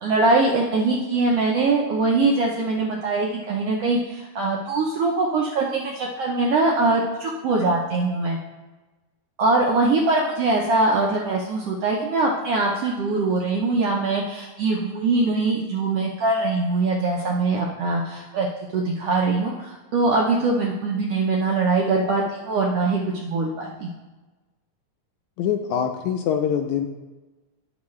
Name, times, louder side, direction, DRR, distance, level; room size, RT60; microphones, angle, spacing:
voice 1, 0.0-8.4 9.4-18.5 18.7-23.9, right 3 dB, 75° right, -1 dB, 1.4 m, -22 dB
voice 2, 25.4-26.9, left 8 dB, 80° left, 5 dB, 1.7 m, -24 dB
11.0 x 7.2 x 3.2 m, 1.2 s
omnidirectional pair, 3.7 m